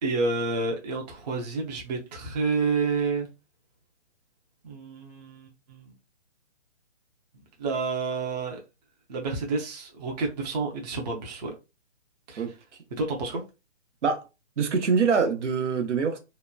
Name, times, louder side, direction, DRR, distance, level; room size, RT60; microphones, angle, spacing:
voice 1, 0.0-3.3 4.6-5.9 7.6-8.6 9.1-11.5 12.3-12.4 13.0-13.4, right 3 dB, 35° right, 0.6 m, -29 dB
voice 2, 14.6-16.2, right 5 dB, 75° right, 0.8 m, -24 dB
2.9 x 2.1 x 2.2 m
hypercardioid pair, 150°, 36 cm